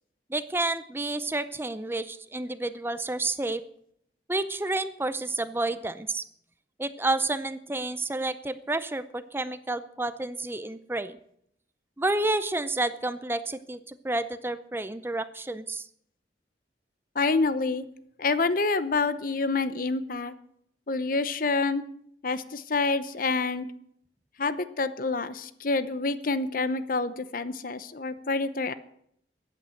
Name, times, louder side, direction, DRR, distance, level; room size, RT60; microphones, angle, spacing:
voice 1, 0.3-3.6 4.3-6.2 6.8-11.2 12.0-15.9, right 2 dB, 15° right, 13 dB, 0.6 m, -30 dB
voice 2, 17.1-17.8 18.2-20.4 20.9-21.8 22.2-23.7 24.4-28.7, left 3 dB, 50° left, 14 dB, 0.8 m, -27 dB
14.0 x 9.2 x 7.8 m, 0.71 s
head